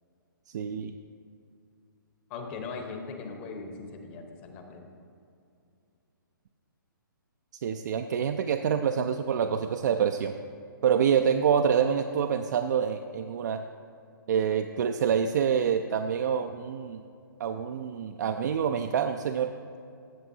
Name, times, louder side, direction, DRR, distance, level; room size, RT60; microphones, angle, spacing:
voice 1, 0.5-0.9 7.6-10.3 10.8-13.6 14.3-17.0 17.4-19.5, right 7 dB, 55° right, 6 dB, 0.4 m, -26 dB
voice 2, 2.3-4.9, left 4 dB, 30° left, 4 dB, 0.9 m, -39 dB
14.0 x 6.9 x 2.7 m, 2.5 s
hypercardioid pair, 145°, 12 cm